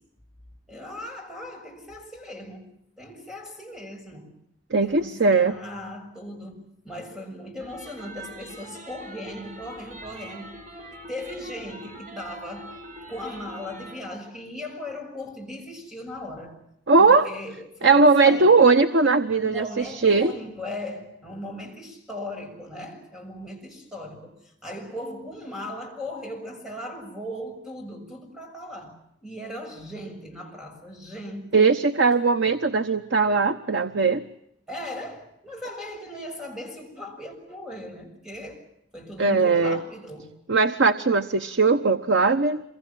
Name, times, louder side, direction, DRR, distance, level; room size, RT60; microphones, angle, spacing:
voice 1, 0.7-2.7 3.0-4.3 4.7-10.6 11.1-12.8 13.1-16.6 17.0-18.6 19.4-31.8 34.7-38.6 38.9-40.3, left 1 dB, 5° right, 6.9 m, -38 dB
voice 2, 4.7-5.6 16.9-17.3 17.8-20.3 31.5-34.2 39.2-39.8 40.5-42.6, right 4 dB, 80° right, 1.1 m, -19 dB
sound 1, 7.6-14.0, right 1 dB, 45° right, 5.5 m, -43 dB
27.5 x 24.0 x 7.3 m
head